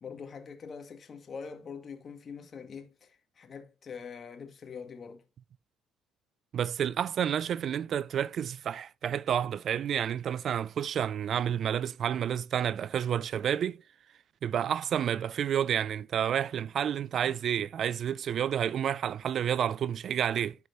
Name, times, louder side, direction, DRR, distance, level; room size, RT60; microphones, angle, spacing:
voice 1, 0.0-5.2, left 6 dB, 45° left, 2.0 m, -44 dB
voice 2, 6.5-13.8 14.4-20.6, right 9 dB, 55° right, 0.4 m, -30 dB
12.0 x 4.8 x 2.8 m
hypercardioid pair, 55°, 0 cm